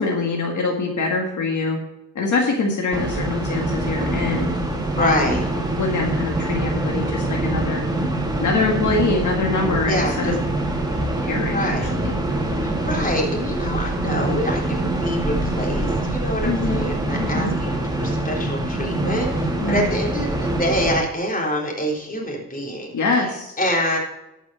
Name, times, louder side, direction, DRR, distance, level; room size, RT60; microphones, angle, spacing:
voice 1, 0.0-1.8 2.2-4.5 5.0-5.4 5.8-7.8 8.4-10.4 11.2-12.1 16.4-17.0 17.2-17.5 19.6-20.0 22.9-23.6, left 3 dB, 65° left, 1 dB, 1.9 m, -24 dB
sound 1, 2.9-21.0, right 1 dB, 10° right, 2.2 m, -24 dB
voice 2, 4.9-5.4 9.9-10.3 11.5-11.9 12.6-23.3 23.6-24.0, equal, 25° left, -1 dB, 3.6 m, -26 dB
12.0 x 6.1 x 5.6 m, 0.91 s
cardioid pair, 100°, 32 cm